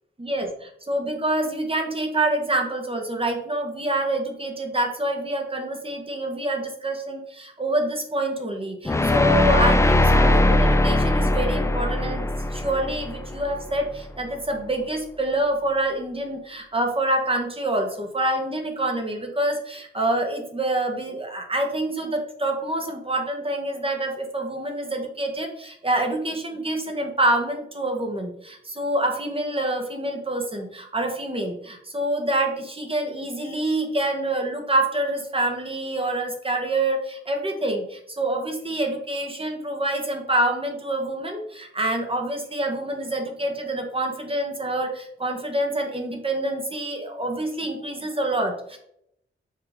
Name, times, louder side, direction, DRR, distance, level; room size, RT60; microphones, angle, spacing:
voice 1, 0.2-12.2 12.5-48.8, right 1 dB, 25° right, 3 dB, 1.1 m, -26 dB
sound 1, 8.8-13.9, left 1 dB, 15° left, 0.4 m, -20 dB
5.8 x 4.7 x 3.5 m, 0.73 s
wide cardioid pair, 120°, 21 cm